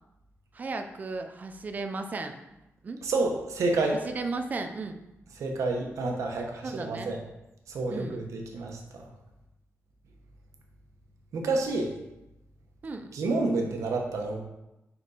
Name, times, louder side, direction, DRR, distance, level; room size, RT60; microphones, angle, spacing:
voice 1, 0.5-2.4 2.8-3.0 3.9-5.0 6.6-7.1 7.9-8.2 12.8-13.1, right 3 dB, 35° right, 6 dB, 0.5 m, -35 dB
voice 2, 3.0-4.0 5.4-7.2 7.7-9.0 11.3-11.9 13.1-14.4, right 3 dB, 90° right, 2 dB, 1.1 m, -29 dB
5.3 x 5.0 x 4.9 m, 0.93 s
wide cardioid pair, 170°, 5 cm